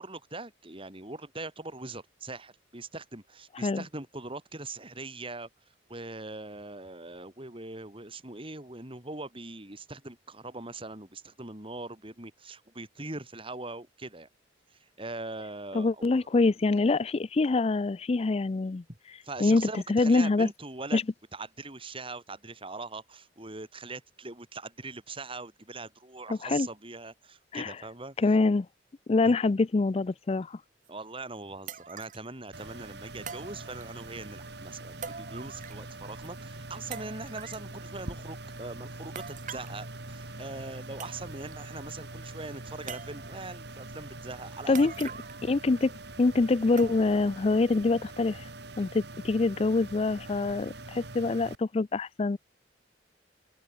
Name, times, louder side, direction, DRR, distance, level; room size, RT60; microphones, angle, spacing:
voice 1, 0.0-5.5 5.9-14.3 14.7-16.3 19.2-21.0 21.3-28.2 29.3-29.4 30.9-45.1, right 2 dB, 30° right, 4.1 m, -41 dB
voice 2, 15.7-18.8 19.4-20.5 20.9-21.0 26.3-26.7 27.5-27.7 28.2-28.7 29.1-30.6 44.7-45.1 45.4-45.9 46.2-48.4 48.8-52.4, left 3 dB, 35° left, 0.4 m, -25 dB
sound 1, 30.9-31.0 31.7-32.3 33.3-34.1 35.0-35.9 36.2-36.3 36.9-37.7 39.2-39.8 40.6-40.7 41.0-41.5 41.9-42.0 42.9-43.5 44.7-45.5 45.8-45.9 46.8-47.3 47.7-47.8 48.5-48.6, right 6 dB, 45° right, 1.5 m, -43 dB
sound 2, 32.5-51.6, right 2 dB, 60° right, 2.9 m, -43 dB
open air
head